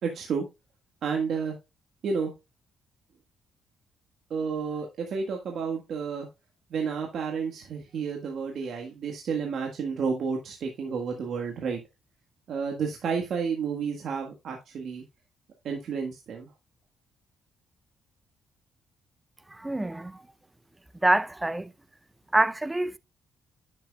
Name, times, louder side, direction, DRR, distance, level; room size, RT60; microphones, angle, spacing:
voice 1, 0.0-0.5 1.0-1.5 2.0-2.3 4.3-6.3 6.7-11.8 12.5-15.0 15.6-16.5, right 5 dB, 65° right, 1.7 m, -31 dB
voice 2, 19.6-20.2 21.0-21.7 22.3-23.0, right 1 dB, 10° right, 0.5 m, -25 dB
10.0 x 7.4 x 2.3 m
cardioid pair, 100°, 0 cm